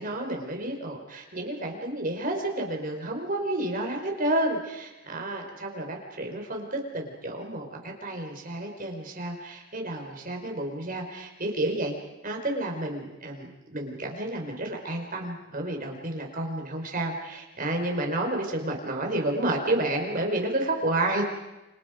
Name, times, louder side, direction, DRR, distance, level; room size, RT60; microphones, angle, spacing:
voice 1, 0.0-12.0 12.2-21.2, right 1 dB, 40° right, 2 dB, 4.8 m, -30 dB
29.0 x 27.5 x 5.2 m, 1.0 s
head